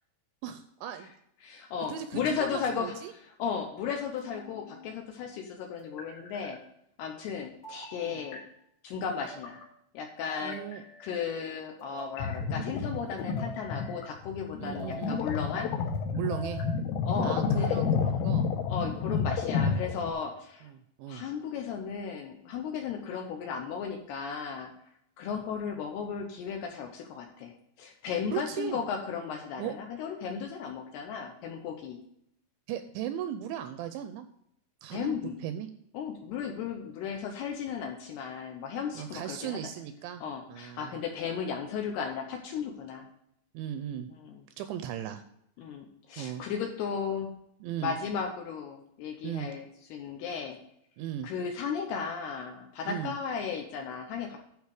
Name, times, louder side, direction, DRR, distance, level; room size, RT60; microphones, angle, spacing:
voice 1, 0.4-1.1 1.6-3.1 8.0-8.2 10.4-10.8 14.6-15.2 16.1-16.6 17.2-18.5 20.6-21.3 28.3-28.8 29.6-29.7 32.7-34.3 34.8-35.7 39.0-40.2 40.5-41.0 43.5-44.1 44.6-45.2 46.2-46.4 47.6-47.9 49.2-49.5 51.0-51.3 52.8-53.2, right 10 dB, 85° right, 9 dB, 2.6 m, -37 dB
voice 2, 1.4-6.6 7.0-8.4 8.8-9.6 9.9-10.6 11.0-15.7 17.0-17.8 18.7-20.7 21.1-24.7 25.2-32.0 34.9-35.4 35.9-39.6 40.2-43.0 44.1-44.4 45.6-47.3 47.8-50.6 51.2-54.4, left 6 dB, 75° left, 3 dB, 2.5 m, -35 dB
sound 1, 2.1-2.8 4.2-4.9 5.8-6.6 7.6-8.4 9.0-9.7 10.3-11.1 11.8-12.4 13.2-14.1 14.7-15.2 15.9-16.8, left 1 dB, 55° left, 4.3 m, -45 dB
sound 2, 12.2-20.1, left 6 dB, 90° left, 3.5 m, -30 dB
11.5 x 4.8 x 4.8 m, 0.73 s
omnidirectional pair, 5.6 m